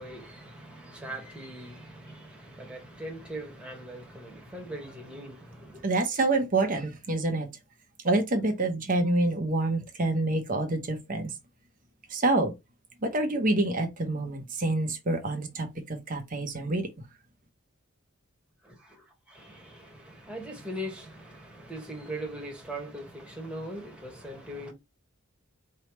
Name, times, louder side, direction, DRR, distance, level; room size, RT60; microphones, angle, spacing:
voice 1, 0.0-5.9 18.6-24.7, right 1 dB, 5° right, 1.5 m, -41 dB
voice 2, 5.8-7.5 8.0-11.3 12.1-12.5 13.0-16.9, right 2 dB, 40° right, 0.9 m, -27 dB
4.7 x 3.3 x 3.1 m
head